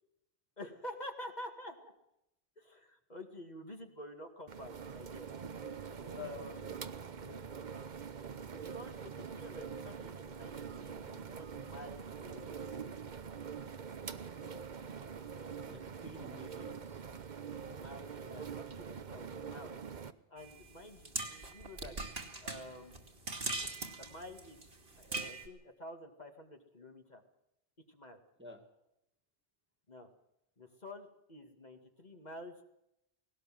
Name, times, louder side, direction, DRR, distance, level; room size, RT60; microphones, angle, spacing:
voice 1, 0.6-1.9 2.6-5.3 6.1-6.9 7.2-7.4 8.4-12.5 17.7-19.8 20.3-22.0 22.4-23.1 24.0-24.6 25.0-27.2 27.9-28.2 29.9-30.1 30.6-32.6, left 1 dB, 45° left, 3 dB, 2.3 m, -49 dB
sound 1, 4.5-20.1, right 6 dB, 50° right, 1.0 m, -44 dB
voice 2, 15.6-17.0 28.4-28.6, equal, 10° right, 3 dB, 2.1 m, -52 dB
sound 2, 20.4-25.5, right 3 dB, 65° right, 2.5 m, -41 dB
18.5 x 18.0 x 7.8 m, 0.84 s
omnidirectional pair, 1.1 m